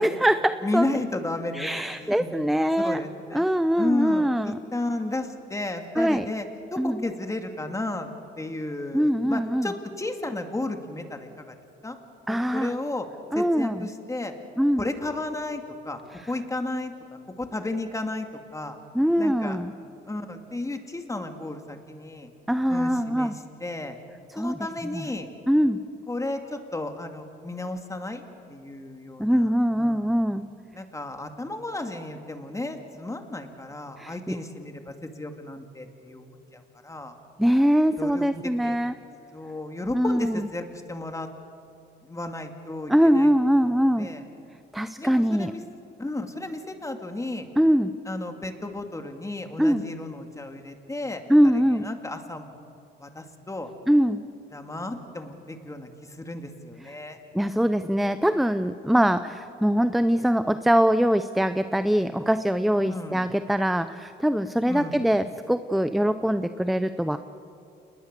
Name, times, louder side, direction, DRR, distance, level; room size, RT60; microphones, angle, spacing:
voice 1, 0.0-0.9 1.5-3.0 3.3-4.5 6.0-6.3 6.8-7.0 8.9-9.7 12.3-12.7 13.3-13.9 14.6-14.9 18.9-19.7 22.5-23.4 24.3-24.6 24.9-25.1 25.5-25.8 29.2-30.5 34.0-34.4 37.4-38.9 39.9-40.5 42.9-44.1 44.7-45.5 47.6-47.9 49.6-49.8 51.3-51.9 53.9-54.2 56.9-57.0 57.3-67.2, equal, ahead, 11 dB, 0.7 m, -22 dB
voice 2, 0.6-1.7 2.0-2.3 2.8-3.4 3.8-6.4 6.7-8.1 8.4-11.6 11.8-12.0 12.3-13.1 13.3-14.3 14.8-16.0 16.2-16.9 17.4-18.3 18.5-18.8 19.2-19.6 20.1-22.3 22.7-23.3 23.6-24.0 24.4-25.3 26.1-28.2 28.5-29.5 29.8-30.1 30.7-37.1 38.0-38.3 38.5-38.8 39.3-41.3 42.0-44.2 45.0-45.6 46.0-47.5 48.1-51.2 51.5-52.5 53.0-53.7 54.5-57.2 62.8-63.2 64.7-65.0, left 2 dB, 15° left, 5 dB, 2.4 m, -33 dB
28.0 x 21.0 x 6.8 m, 2.6 s
cardioid pair, 90°, 20 cm